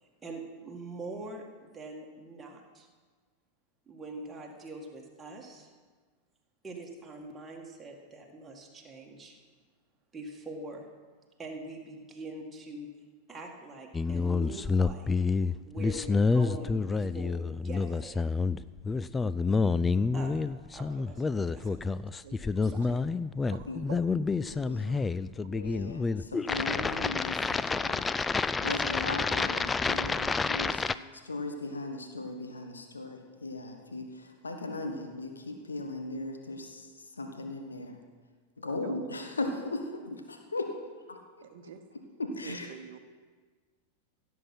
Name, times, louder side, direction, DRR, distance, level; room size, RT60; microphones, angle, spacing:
voice 1, 0.0-2.9 3.9-5.7 6.6-9.4 10.1-10.9 11.4-12.9 13.3-15.1 15.6-18.3 20.1-20.3 20.7-21.9 22.5-22.9, right 2 dB, 15° right, -1 dB, 1.9 m, -43 dB
sound 1, 13.9-31.0, left 4 dB, 15° left, 0.3 m, -29 dB
voice 2, 22.2-23.1 23.5-24.0 24.8-25.1 38.8-39.3 41.4-41.9 42.3-43.0, right 9 dB, 55° right, 8 dB, 1.0 m, -48 dB
voice 3, 24.4-25.1 25.4-28.1 28.6-30.8 31.1-38.0 38.6-41.5 42.2-42.7, left 2 dB, 75° left, 4 dB, 1.3 m, -38 dB
16.0 x 7.5 x 5.8 m, 1.5 s
figure-of-eight pair, 90°, 0 cm